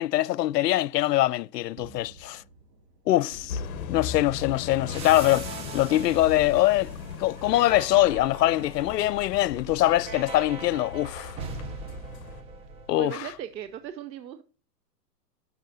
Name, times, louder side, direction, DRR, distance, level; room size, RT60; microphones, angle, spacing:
voice 1, 0.0-2.4 3.1-3.6 3.9-6.9 7.2-11.4 12.9-13.3, left 15 dB, 75° left, 0.5 m, -23 dB
sound 1, 1.7-11.2, right 2 dB, 65° right, 2.5 m, -50 dB
sound 2, 3.5-12.4, left 7 dB, 55° left, 1.1 m, -39 dB
sound 3, 4.9-13.3, right 4 dB, 10° right, 0.6 m, -41 dB
voice 2, 13.0-14.4, right 10 dB, 90° right, 0.8 m, -37 dB
12.0 x 5.6 x 2.6 m
hypercardioid pair, 140°, 50 cm